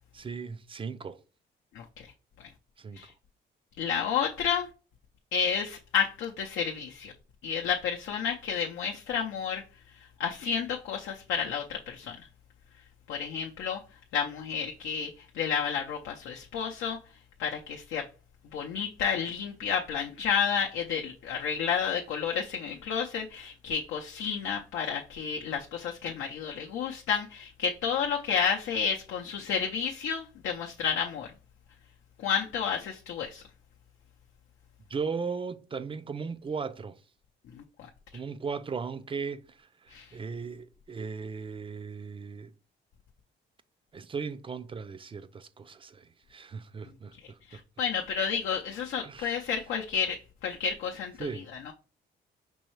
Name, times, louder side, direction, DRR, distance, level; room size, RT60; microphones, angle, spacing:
voice 1, 0.1-1.2 2.8-3.0 34.9-37.0 38.1-42.5 43.9-47.6 49.0-49.5 51.2-51.5, right 5 dB, 25° right, 0.4 m, -37 dB
voice 2, 3.8-4.7 5.3-7.1 7.4-9.6 10.2-12.2 13.1-13.8 14.1-17.0 17.4-18.0 18.5-31.3 32.2-33.4 39.9-40.1 47.5-51.3 51.6-51.7, left 7 dB, 80° left, 0.6 m, -31 dB
5.3 x 3.1 x 3.1 m
cardioid pair, 90°, 20 cm